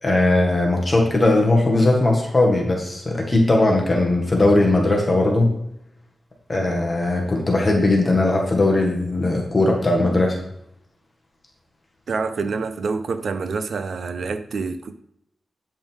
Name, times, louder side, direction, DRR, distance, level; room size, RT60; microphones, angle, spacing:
voice 1, 0.0-5.5 6.5-10.4, left 2 dB, 30° left, 1.7 m, -19 dB
voice 2, 12.1-15.0, right 4 dB, 75° right, 0.6 m, -27 dB
9.1 x 5.4 x 3.5 m
wide cardioid pair, 100°, 0 cm